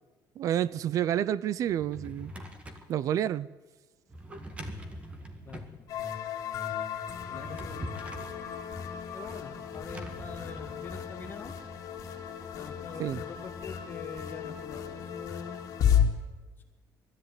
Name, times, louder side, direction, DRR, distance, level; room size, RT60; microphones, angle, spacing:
voice 1, 0.4-2.3 2.9-3.5 13.0-13.2, right 11 dB, 50° right, 0.5 m, -29 dB
Drawer open or close, 1.6-2.9 4.1-5.8 7.1-8.4 9.7-11.4, equal, 15° right, 1.8 m, -43 dB
voice 2, 5.4-5.9 7.3-8.0 9.1-11.5 12.5-15.6 16.6-16.7, left 5 dB, 30° left, 1.7 m, -45 dB
sound 1, 5.9-16.0, left 9 dB, 50° left, 2.8 m, -33 dB
20.5 x 13.5 x 9.5 m
cardioid pair, 170°, 7 cm